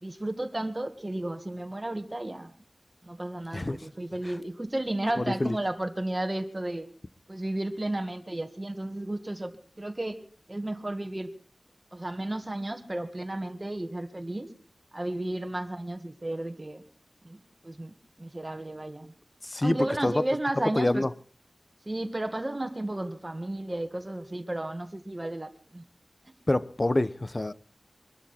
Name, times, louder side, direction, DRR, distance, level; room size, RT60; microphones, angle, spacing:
voice 1, 0.0-2.5 3.0-6.9 7.3-10.2 10.5-11.3 11.9-14.5 14.9-16.8 17.2-17.4 17.6-19.1 19.6-21.0 21.9-25.8, right 1 dB, 30° right, 1.8 m, -33 dB
voice 2, 5.2-5.6 19.4-19.8 20.0-20.2 20.7-21.1 26.5-27.5, left 1 dB, 35° left, 0.8 m, -26 dB
24.0 x 12.5 x 4.3 m
wide cardioid pair, 75°, 0 cm